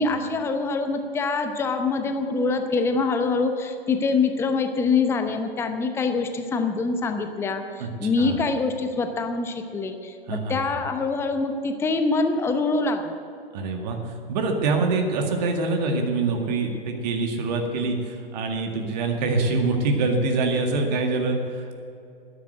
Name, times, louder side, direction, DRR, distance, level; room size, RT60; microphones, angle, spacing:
voice 1, 0.0-13.2, left 4 dB, 10° left, 7 dB, 0.8 m, -25 dB
voice 2, 13.5-21.8, right 3 dB, 45° right, 3 dB, 2.0 m, -25 dB
12.5 x 10.5 x 8.0 m, 2.6 s
figure-of-eight pair, 120°, 29 cm